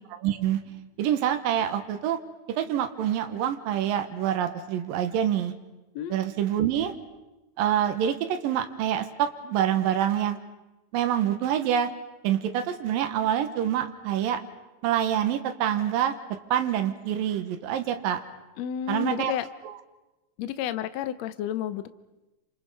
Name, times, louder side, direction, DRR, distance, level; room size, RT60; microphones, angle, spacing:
voice 1, 0.2-0.6 1.0-2.2 2.5-5.5 6.1-6.9 7.6-10.4 10.9-11.9 12.2-14.4 14.8-16.1 16.5-18.2 18.9-19.3 19.6-19.7, right 10 dB, 80° right, 7 dB, 2.9 m, -26 dB
voice 2, 18.6-19.4 20.4-21.9, left 11 dB, 70° left, 12 dB, 1.7 m, -31 dB
28.5 x 27.5 x 5.5 m, 1.1 s
omnidirectional pair, 4.1 m